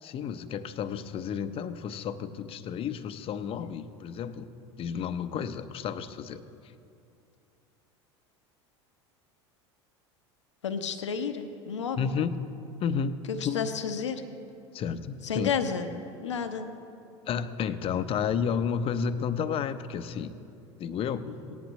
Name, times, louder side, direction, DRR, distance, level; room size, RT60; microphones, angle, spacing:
voice 1, 0.0-6.4 12.0-12.4 12.8-13.7 14.7-15.5 17.3-20.4 20.8-21.3, left 7 dB, 40° left, 11 dB, 0.6 m, -31 dB
voice 2, 10.6-12.1 13.3-14.2 15.2-15.9 16.2-16.7 21.3-21.6, left 6 dB, 90° left, 8 dB, 0.8 m, -31 dB
18.5 x 10.5 x 3.1 m, 2.6 s
hypercardioid pair, 85°, 15 cm